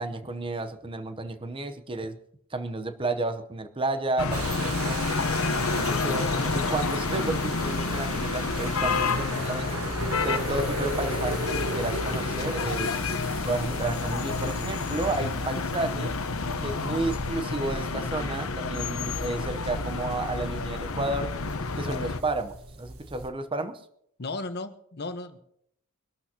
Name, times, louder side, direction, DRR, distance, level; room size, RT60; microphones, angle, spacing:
voice 1, 0.0-2.2 2.5-5.0 5.7-9.8 10.2-13.0 13.4-16.1 16.6-21.3 21.8-23.8, right 2 dB, 25° right, 0.8 m, -32 dB
sound 1, 4.2-22.2, left 4 dB, 70° left, 0.9 m, -29 dB
sound 2, 4.3-23.3, right 2 dB, 90° right, 1.5 m, -38 dB
voice 2, 24.2-25.4, left 3 dB, 50° left, 1.1 m, -35 dB
24.5 x 12.0 x 2.9 m
head